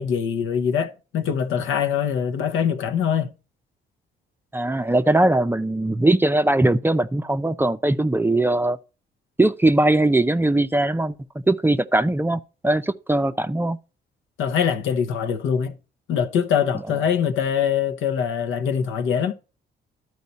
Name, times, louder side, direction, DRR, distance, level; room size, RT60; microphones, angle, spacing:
voice 1, 0.0-3.3 14.4-15.8 16.1-19.3, left 8 dB, 85° left, 0.9 m, -23 dB
voice 2, 4.5-8.8 9.4-11.1 11.5-13.8, right 2 dB, 10° right, 0.5 m, -20 dB
12.0 x 4.6 x 4.1 m
cardioid pair, 90°, 20 cm